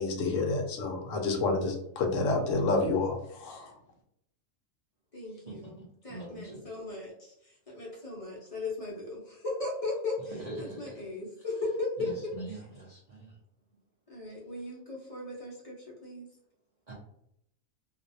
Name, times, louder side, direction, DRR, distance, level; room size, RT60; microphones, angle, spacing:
voice 1, 0.0-3.7, left 3 dB, 70° left, 2 dB, 0.9 m, -29 dB
voice 2, 5.1-12.6 14.1-16.3, left 2 dB, 45° left, -5 dB, 0.4 m, -37 dB
voice 3, 6.1-6.7 10.4-11.0 12.0-13.3 16.9-17.0, right 1 dB, 65° right, -5 dB, 0.4 m, -42 dB
2.5 x 2.1 x 2.6 m, 0.75 s
omnidirectional pair, 1.5 m